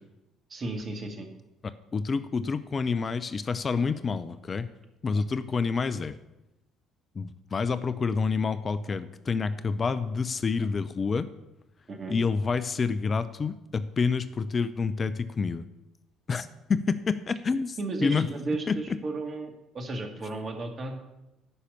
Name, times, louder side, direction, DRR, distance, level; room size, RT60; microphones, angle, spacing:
voice 1, 0.5-1.3 11.9-12.2 17.8-21.0, right 2 dB, 40° right, 4 dB, 2.2 m, -34 dB
voice 2, 1.9-4.7 5.0-6.2 7.1-11.3 12.1-15.6 16.3-18.3 18.7-18.8, left 5 dB, 35° left, 13 dB, 0.5 m, -28 dB
11.0 x 5.7 x 8.5 m, 0.95 s
figure-of-eight pair, 50°, 0 cm